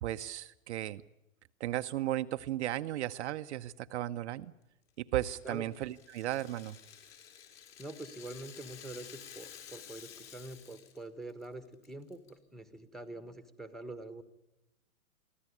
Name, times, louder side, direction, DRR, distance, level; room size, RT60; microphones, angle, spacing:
voice 1, 0.0-1.0 1.6-4.5 5.0-6.8, right 14 dB, 55° right, 10 dB, 0.7 m, -35 dB
Rattle (instrument), 5.2-11.0 11.3-11.4 11.8-12.3, left 9 dB, 40° left, 4.4 m, -52 dB
voice 2, 7.8-14.2, right 2 dB, ahead, 10 dB, 1.3 m, -45 dB
24.0 x 15.0 x 9.8 m, 0.89 s
hypercardioid pair, 120°, 41 cm